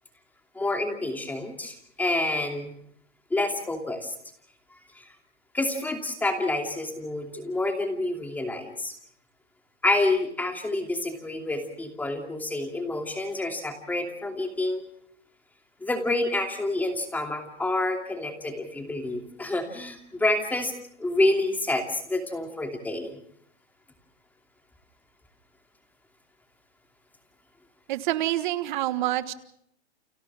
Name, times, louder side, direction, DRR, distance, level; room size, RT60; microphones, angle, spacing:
voice 1, 0.5-2.7 3.3-4.1 5.0-5.1 5.5-8.9 9.8-14.8 15.8-20.7 21.0-23.2, left 2 dB, 5° left, 4 dB, 2.7 m, -28 dB
voice 2, 27.9-29.3, right 14 dB, 45° right, 12 dB, 1.6 m, -27 dB
30.0 x 29.5 x 3.6 m, 0.68 s
hypercardioid pair, 145°, 35 cm